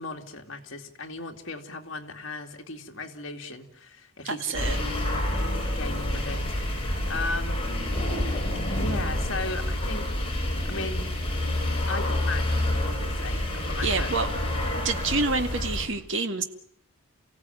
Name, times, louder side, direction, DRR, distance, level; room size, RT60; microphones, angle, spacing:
voice 1, 0.0-4.9 5.7-7.6 8.7-10.3 10.6-11.1 11.9-14.1, left 3 dB, 55° left, 3 dB, 2.5 m, -37 dB
voice 2, 4.2-4.8 13.8-14.3 14.8-16.4, right 3 dB, 55° right, 7 dB, 2.0 m, -27 dB
sound 1, 4.5-15.9, left 1 dB, 25° left, 6.4 m, -28 dB
29.5 x 16.5 x 9.1 m, 0.68 s
head